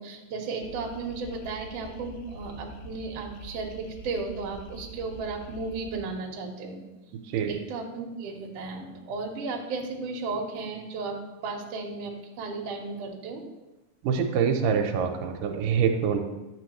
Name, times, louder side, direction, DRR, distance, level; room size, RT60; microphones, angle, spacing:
voice 1, 0.0-6.8 7.5-12.1 12.4-13.4, right 4 dB, 60° right, 1 dB, 1.8 m, -34 dB
sound 1, 0.6-6.1, right 1 dB, 85° left, 2.3 m, -45 dB
voice 2, 7.2-7.6 14.0-16.2, right 7 dB, 85° right, 4 dB, 2.3 m, -25 dB
9.8 x 6.9 x 3.0 m, 1.0 s
omnidirectional pair, 3.9 m